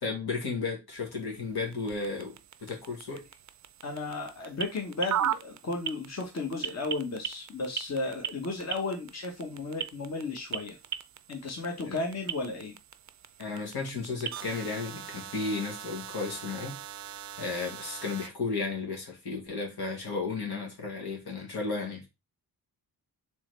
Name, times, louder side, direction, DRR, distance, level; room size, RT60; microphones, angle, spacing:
voice 1, 0.0-3.3 11.8-12.0 13.4-16.8 17.4-22.1, left 4 dB, 75° left, 1.6 m, -34 dB
sound 1, 0.9-18.3, right 9 dB, 50° right, 0.4 m, -39 dB
voice 2, 3.8-10.8 11.3-12.7, left 3 dB, 45° left, 1.2 m, -34 dB
3.7 x 3.1 x 3.2 m
cardioid pair, 60°, 38 cm